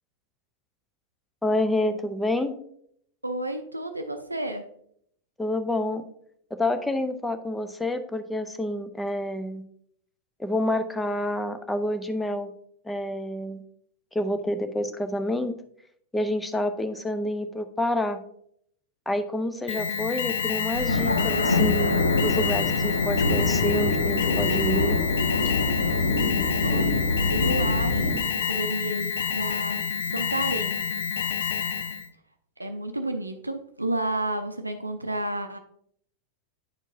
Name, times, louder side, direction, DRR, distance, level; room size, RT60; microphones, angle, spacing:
voice 1, 1.4-2.6 5.4-6.0 6.6-9.6 10.4-12.5 12.9-13.6 14.1-15.5 16.1-18.2 19.1-22.0 22.2-25.0, left 1 dB, 5° left, 8 dB, 0.6 m, -28 dB
voice 2, 3.2-4.7 26.6-29.8 30.0-30.8 32.6-35.6, right 1 dB, 85° right, 6 dB, 0.5 m, -31 dB
Alarm, 19.7-32.1, left 7 dB, 60° left, 0.4 m, -29 dB
sound 1, 20.7-28.1, left 2 dB, 80° left, 1.7 m, -24 dB
9.2 x 4.5 x 2.6 m, 0.68 s
figure-of-eight pair, 90°, 0 cm